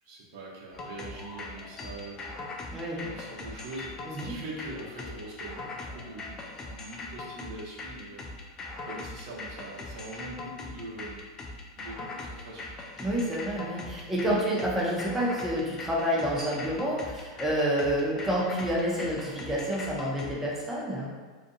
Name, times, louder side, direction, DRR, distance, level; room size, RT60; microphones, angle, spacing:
voice 1, 0.0-2.6 3.0-6.4 6.7-11.2 11.8-12.7 14.3-14.7, right 2 dB, 55° right, -5 dB, 0.8 m, -43 dB
sound 1, 0.7-20.3, left 2 dB, 25° left, 0.4 m, -41 dB
voice 2, 2.7-3.0 4.0-4.3 13.0-21.1, equal, 10° right, -5 dB, 0.7 m, -29 dB
2.5 x 2.5 x 2.6 m, 1.4 s
hypercardioid pair, 115°, 2 cm